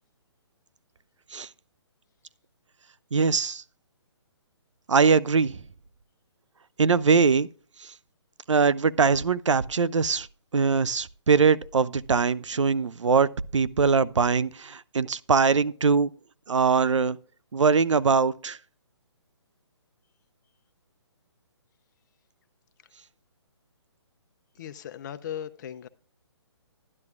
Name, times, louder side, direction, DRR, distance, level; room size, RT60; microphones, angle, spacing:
voice 1, 3.1-3.6 4.9-5.6 6.8-7.5 7.8-7.9 8.5-10.3 10.5-16.1 16.5-17.2 17.5-18.6, right 5 dB, 90° right, 0.5 m, -22 dB
voice 2, 24.5-25.9, left 9 dB, 40° left, 0.6 m, -37 dB
12.0 x 11.0 x 2.4 m
figure-of-eight pair, 145°, 15 cm